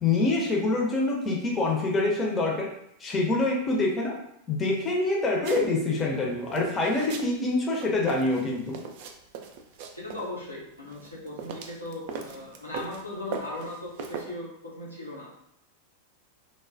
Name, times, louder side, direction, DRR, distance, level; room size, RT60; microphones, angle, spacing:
voice 1, 0.0-2.7 3.0-4.1 4.5-8.8, left 2 dB, 20° left, -1 dB, 0.6 m, -26 dB
sound 1, 5.4-6.1 6.5-7.3 7.7-10.3 10.9-13.0 13.3-14.3, right 6 dB, 50° right, 0.3 m, -38 dB
voice 2, 9.9-15.4, left 2 dB, 85° left, -5 dB, 0.8 m, -38 dB
3.2 x 2.1 x 2.5 m, 0.77 s
figure-of-eight pair, 90°, 0 cm